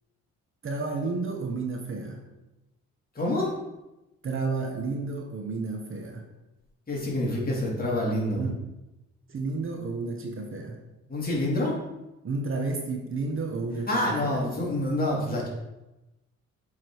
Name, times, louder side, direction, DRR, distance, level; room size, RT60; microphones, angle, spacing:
voice 1, 0.6-2.2 4.2-6.2 8.1-8.5 9.3-10.8 12.2-14.4, right 3 dB, 45° right, 3 dB, 1.1 m, -31 dB
voice 2, 3.1-3.5 6.9-8.4 11.1-11.7 13.9-15.5, left 1 dB, 30° left, -3 dB, 2.5 m, -27 dB
7.9 x 3.8 x 4.6 m, 0.99 s
cardioid pair, 90°, 30 cm